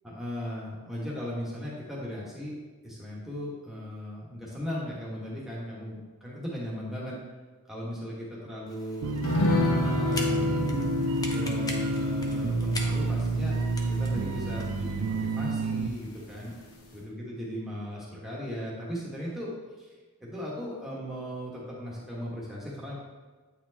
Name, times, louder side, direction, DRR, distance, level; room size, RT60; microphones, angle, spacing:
voice 1, 0.0-2.6 2.8-7.2 7.7-9.2 9.6-10.7 11.3-13.6 13.9-16.5 16.9-19.5 19.8-19.9 20.2-22.9, equal, ahead, -6 dB, 1.3 m, -37 dB
sound 1, 8.7-16.8, left 2 dB, 15° left, 0.5 m, -44 dB
sound 2, 9.0-15.9, right 3 dB, 75° right, 0.4 m, -29 dB
sound 3, 9.2-16.0 16.3-16.4 16.8-16.9, left 2 dB, 75° left, 0.9 m, -31 dB
8.1 x 4.3 x 2.8 m, 1.3 s
head